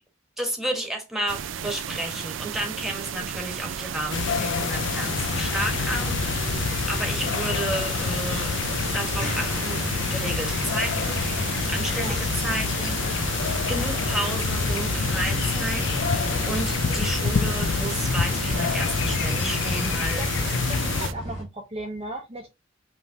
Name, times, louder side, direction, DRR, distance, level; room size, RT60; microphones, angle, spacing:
voice 1, 0.4-8.5 8.9-11.2 11.7-12.1 12.4-13.3 13.7-15.8 16.5-20.2, right 1 dB, ahead, 1.5 m, -32 dB
sound 1, 1.3-21.1, right 8 dB, 80° right, 0.5 m, -33 dB
sound 2, 4.1-21.1, left 6 dB, 65° left, 0.4 m, -27 dB
sound 3, 5.1-21.4, equal, 35° left, 2.4 m, -34 dB
voice 2, 20.2-22.5, right 1 dB, 30° right, 0.8 m, -36 dB
5.5 x 3.2 x 2.8 m
head